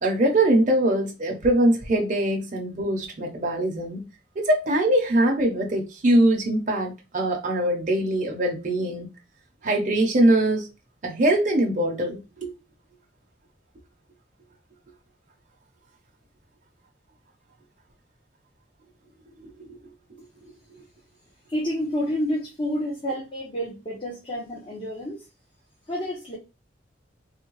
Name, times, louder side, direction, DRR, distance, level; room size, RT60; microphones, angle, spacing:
voice 1, 0.0-4.0 4.4-9.1 9.6-10.7 11.0-12.5 19.6-19.8, right 1 dB, 45° right, 0.7 m, -22 dB
voice 2, 21.5-25.3 25.9-26.4, equal, 30° left, 0.8 m, -29 dB
3.4 x 2.2 x 3.0 m
head